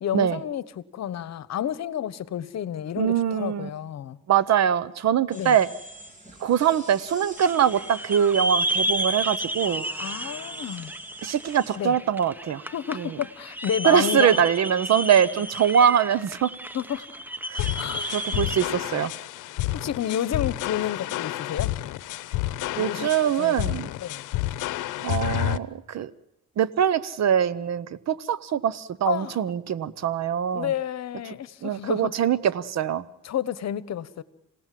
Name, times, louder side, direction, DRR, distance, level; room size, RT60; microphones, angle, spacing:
voice 1, 0.0-4.2 5.3-5.6 10.0-10.9 11.8-11.9 12.7-14.4 16.7-17.2 17.5-18.4 19.7-21.7 22.8-23.6 24.0-24.2 29.0-29.4 30.5-32.1 33.2-34.2, left 10 dB, 60° left, 1.1 m, -30 dB
voice 2, 3.0-3.7 4.3-5.7 6.4-9.8 11.2-12.6 12.9-13.2 13.8-16.5 17.5-17.7 18.1-19.1 22.8-23.9 25.0-26.1 26.6-30.7 31.6-33.0, right 9 dB, 60° right, 1.0 m, -23 dB
sound 1, 5.3-11.8, right 1 dB, 25° right, 3.6 m, -47 dB
sound 2, 7.4-18.6, right 1 dB, 5° right, 1.0 m, -32 dB
sound 3, 17.6-25.6, left 15 dB, 85° left, 0.8 m, -30 dB
28.5 x 18.0 x 7.6 m
cardioid pair, 90°, 30 cm